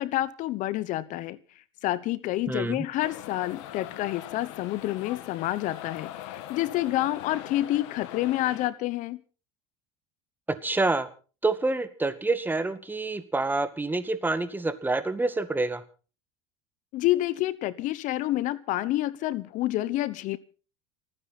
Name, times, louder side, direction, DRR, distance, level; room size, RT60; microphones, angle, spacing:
voice 1, 0.0-1.4 1.8-9.2 16.9-20.4, left 15 dB, 55° left, 17 dB, 1.0 m, -28 dB
voice 2, 2.5-2.9 10.5-11.1 11.4-15.8, right 3 dB, 10° right, 11 dB, 2.0 m, -27 dB
sound 1, 3.0-8.7, left 13 dB, 75° left, 1.8 m, -42 dB
29.5 x 9.9 x 4.1 m, 0.38 s
hypercardioid pair, 90°, 15 cm